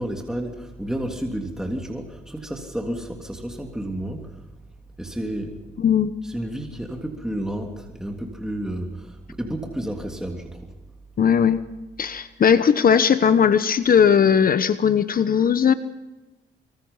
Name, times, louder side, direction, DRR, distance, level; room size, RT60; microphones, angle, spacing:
voice 1, 0.0-4.3 5.0-5.6 6.2-10.6, right 1 dB, 5° right, 2 dB, 3.2 m, -31 dB
voice 2, 5.8-6.1 11.2-11.6 12.0-15.7, left 7 dB, 45° left, 12 dB, 1.1 m, -18 dB
25.0 x 25.0 x 5.7 m, 1.1 s
cardioid pair, 90°, 20 cm